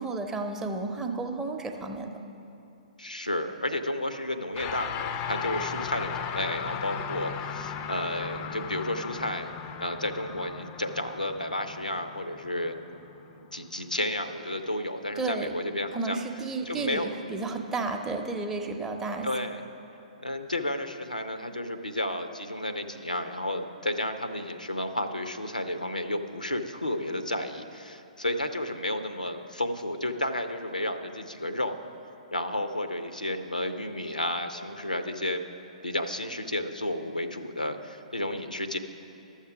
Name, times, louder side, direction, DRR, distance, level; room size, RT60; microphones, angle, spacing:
voice 1, 0.0-2.2 15.2-15.5 15.9-19.3, right 3 dB, 10° right, 4 dB, 0.6 m, -32 dB
voice 2, 3.0-9.5 9.8-12.8 13.3-16.2 16.6-17.1 19.2-19.6 20.2-31.7 32.3-35.4 35.8-38.8, left 1 dB, 90° left, 8 dB, 0.6 m, -32 dB
sound 1, 4.5-14.0, left 7 dB, 25° left, 0.4 m, -37 dB
12.0 x 7.3 x 5.9 m, 2.9 s
figure-of-eight pair, 120°, 4 cm